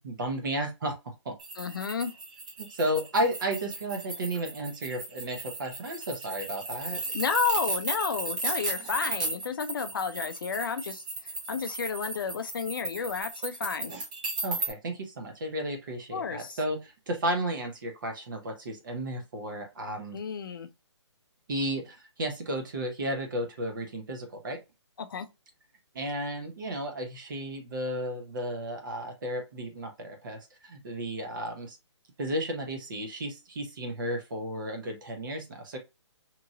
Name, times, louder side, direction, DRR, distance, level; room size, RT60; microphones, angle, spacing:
voice 1, 0.0-1.3 2.7-7.0 14.4-20.2 21.5-24.6 25.9-31.8 32.2-35.8, right 1 dB, 45° right, 0.9 m, -33 dB
sound 1, 1.4-14.7, right 2 dB, 15° right, 0.5 m, -35 dB
voice 2, 1.6-2.1 7.1-13.9 16.1-16.6 20.1-20.7 25.0-25.3, left 6 dB, 45° left, 0.5 m, -32 dB
2.9 x 2.5 x 2.6 m
hypercardioid pair, 170°, 15 cm